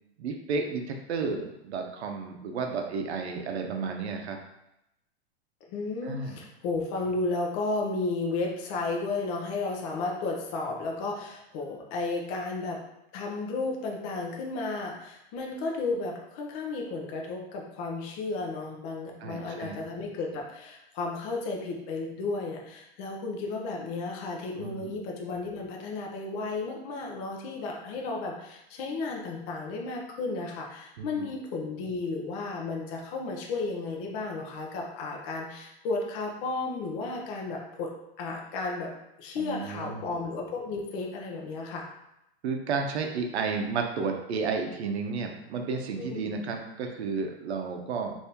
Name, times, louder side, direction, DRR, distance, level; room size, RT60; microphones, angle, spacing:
voice 1, 0.2-4.4 6.0-6.4 19.2-19.8 24.6-25.0 31.0-31.3 39.4-40.0 42.4-48.1, right 4 dB, 85° right, 3 dB, 0.6 m, -32 dB
voice 2, 5.7-12.8 13.1-38.9 39.2-41.9 46.0-46.4, left 3 dB, 35° left, 0 dB, 0.6 m, -33 dB
3.4 x 2.7 x 2.8 m, 0.84 s
supercardioid pair, 145°, 32 cm